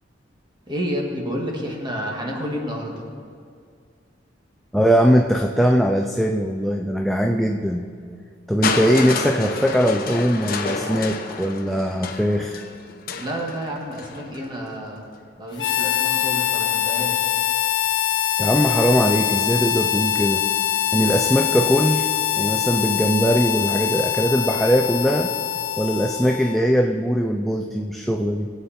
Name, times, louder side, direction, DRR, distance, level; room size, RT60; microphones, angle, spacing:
voice 1, 0.7-3.0 13.2-15.1 15.4-17.4, equal, 25° right, -1 dB, 2.0 m, -30 dB
voice 2, 4.7-7.9 8.5-12.6 18.4-20.5 20.9-22.1 22.4-25.3 25.8-28.5, equal, ahead, 2 dB, 0.5 m, -20 dB
Crushing, 8.6-14.5 15.5-15.6, left 4 dB, 55° left, 1.0 m, -30 dB
Harmonica, 15.6-26.7, left 12 dB, 70° left, 0.6 m, -23 dB
20.5 x 8.1 x 4.3 m, 2.2 s
head